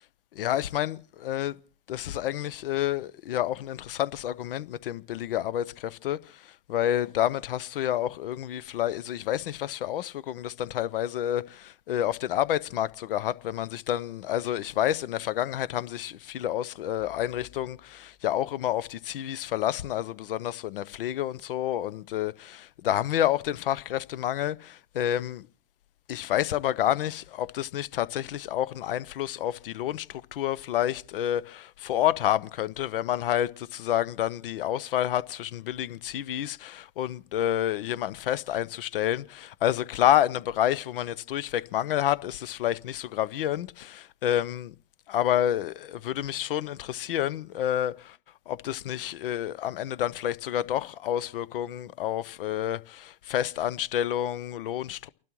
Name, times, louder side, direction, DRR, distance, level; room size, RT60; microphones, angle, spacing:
voice 1, 0.3-1.6 1.9-25.5 26.1-44.8 45.1-48.2 48.5-55.1, left 12 dB, 70° left, 0.6 m, -29 dB
sound 1, 17.0-19.1, left 9 dB, 45° left, 2.8 m, -59 dB
29.5 x 12.0 x 3.0 m
hypercardioid pair, 110°, 29 cm